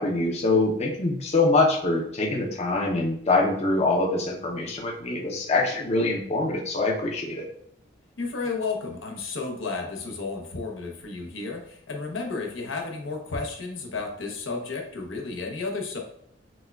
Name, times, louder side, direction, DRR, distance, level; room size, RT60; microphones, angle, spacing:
voice 1, 0.0-7.4, left 2 dB, 35° left, 0 dB, 0.5 m, -24 dB
voice 2, 8.2-16.0, left 4 dB, 85° left, 2 dB, 0.7 m, -32 dB
6.1 x 2.2 x 2.2 m, 0.67 s
head